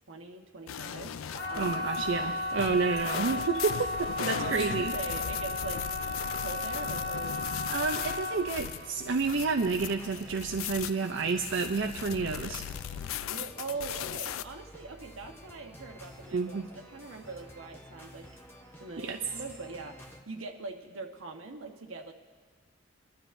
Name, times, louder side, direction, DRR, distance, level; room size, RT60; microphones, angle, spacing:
voice 1, 0.1-1.2 1.5-1.8 3.7-3.8 4.4-5.8 6.4-7.4 13.2-18.3 18.8-22.1, right 3 dB, 85° right, 3 dB, 1.2 m, -41 dB
sound 1, 0.7-14.4, left 9 dB, 90° left, 0.4 m, -38 dB
sound 2, 1.0-20.2, equal, 10° left, 0.9 m, -51 dB
sound 3, 1.3-12.1 12.4-13.0 13.4-13.5, left 2 dB, 50° left, 1.1 m, -35 dB
voice 2, 1.6-4.9 7.7-12.6 16.3-16.7 19.0-19.2, right 4 dB, 65° right, 5 dB, 0.5 m, -30 dB
25.0 x 12.0 x 2.6 m, 1.5 s
head